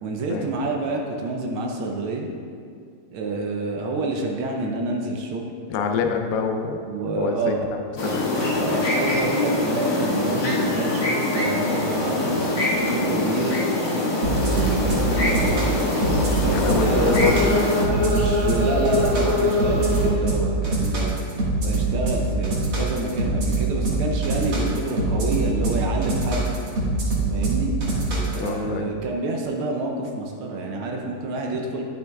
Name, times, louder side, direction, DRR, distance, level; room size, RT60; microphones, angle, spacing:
voice 1, 0.0-2.3 3.1-5.4 6.8-7.7 8.6-12.4 12.9-15.7 16.4-17.2 17.9-21.1 21.6-26.5 27.3-27.7 28.3-31.8, right 2 dB, 80° right, 1 dB, 1.6 m, -28 dB
voice 2, 5.7-8.9 16.5-17.5 24.7-24.8 28.4-28.9 31.5-31.6, left 5 dB, 80° left, 4 dB, 0.8 m, -27 dB
sound 1, 8.0-17.8, left 2 dB, 55° left, 2.1 m, -24 dB
sound 2, 14.2-28.5, right 3 dB, 65° right, 2.4 m, -24 dB
sound 3, 14.5-20.1, left 2 dB, 45° right, 1.8 m, -26 dB
11.0 x 7.5 x 2.3 m, 2.3 s
omnidirectional pair, 2.3 m